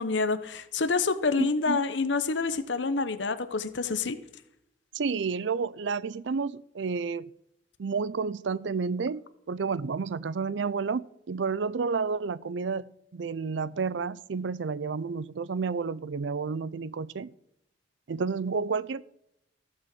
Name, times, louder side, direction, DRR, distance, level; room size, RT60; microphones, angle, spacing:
voice 1, 0.0-4.2, left 4 dB, 80° left, 0.9 m, -27 dB
voice 2, 1.4-1.8 4.9-7.3 7.8-17.3 18.1-19.0, right 5 dB, 80° right, 0.5 m, -31 dB
15.0 x 6.3 x 7.6 m
head